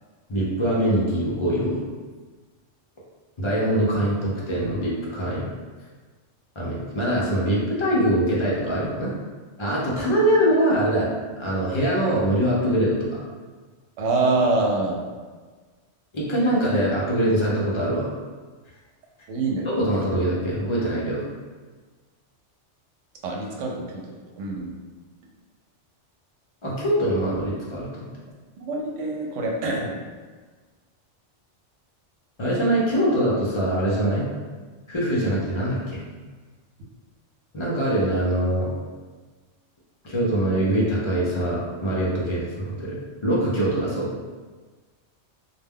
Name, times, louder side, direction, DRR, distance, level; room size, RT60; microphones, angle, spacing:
voice 1, 0.3-1.8 3.4-5.5 6.6-9.1 9.6-11.1 11.4-13.2 16.1-18.1 19.6-21.2 26.6-28.1 32.4-34.3 34.9-36.0 37.5-38.7 40.0-44.1, right 1 dB, 45° left, -6 dB, 0.4 m, -23 dB
voice 2, 14.0-15.0 19.3-19.7 23.2-24.8 28.6-30.0, right 3 dB, 80° right, 0 dB, 0.9 m, -25 dB
2.2 x 2.2 x 3.5 m, 1.4 s
omnidirectional pair, 1.3 m